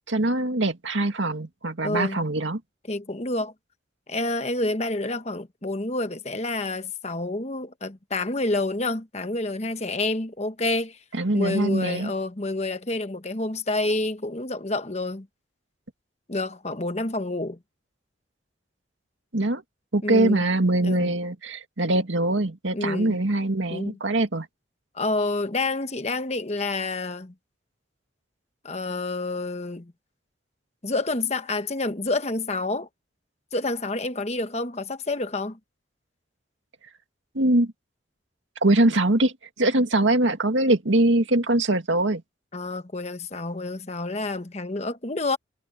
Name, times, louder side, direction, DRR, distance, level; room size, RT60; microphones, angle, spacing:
voice 1, 0.1-2.6 11.1-12.1 19.3-19.6 19.9-24.5 37.3-37.7 38.6-42.2, right 2 dB, 85° right, 2.1 m, -23 dB
voice 2, 1.8-2.2 2.9-3.5 4.1-11.0 11.3-15.3 16.3-17.6 20.0-20.4 20.8-21.1 22.7-23.2 23.7-24.0 24.9-27.3 28.6-29.9 30.8-32.9 33.5-35.6 42.5-45.4, left 2 dB, 35° left, 1.2 m, -28 dB
head